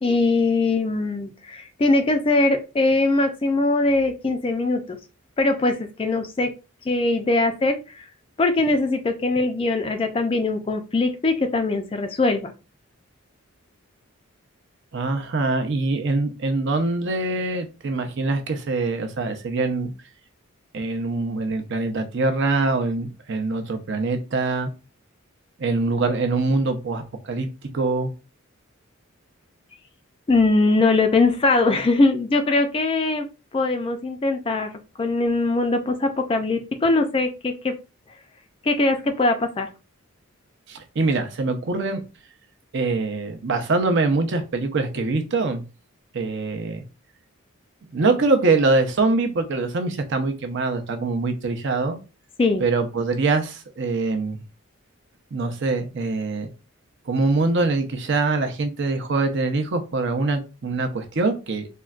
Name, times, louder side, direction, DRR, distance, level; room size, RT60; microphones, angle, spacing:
voice 1, 0.0-5.0 5.4-6.5 6.9-8.1 8.4-12.5 30.3-33.3 33.5-34.7 35.0-37.7 38.6-39.7 52.4-52.6, left 2 dB, 25° left, 0.3 m, -21 dB
voice 2, 14.9-19.9 20.7-24.7 25.6-27.5 27.7-28.1 40.7-42.0 42.7-45.6 46.1-46.8 47.9-52.0 52.6-54.4 55.3-56.5 57.1-61.7, right 3 dB, 55° right, 0.6 m, -23 dB
3.7 x 2.1 x 2.3 m
head